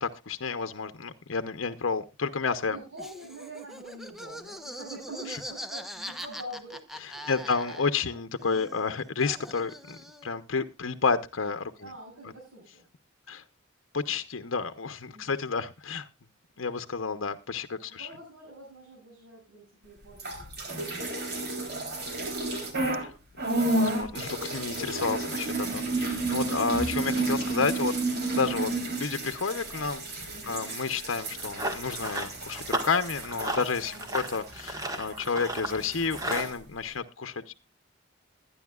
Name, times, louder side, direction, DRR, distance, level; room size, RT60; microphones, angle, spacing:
voice 1, 0.0-2.8 7.0-11.9 13.3-13.4 13.9-16.1 16.6-18.1 23.0-37.6, left 5 dB, 85° left, 9 dB, 0.8 m, -31 dB
voice 2, 2.7-7.3 7.6-8.2 11.8-12.9 15.1-15.5 17.9-22.3 30.3-30.6 33.9-34.3, right 1 dB, 80° right, -6 dB, 7.2 m, -46 dB
Laughter, 3.0-8.1 8.4-10.4, equal, ahead, 0.9 m, -42 dB
sound 1, 20.1-23.1 23.4-35.3 35.5-36.5, right 2 dB, 55° right, 3.5 m, -32 dB
Run, 31.2-36.5, right 1 dB, 20° right, 1.6 m, -35 dB
21.5 x 10.0 x 2.4 m, 0.24 s
head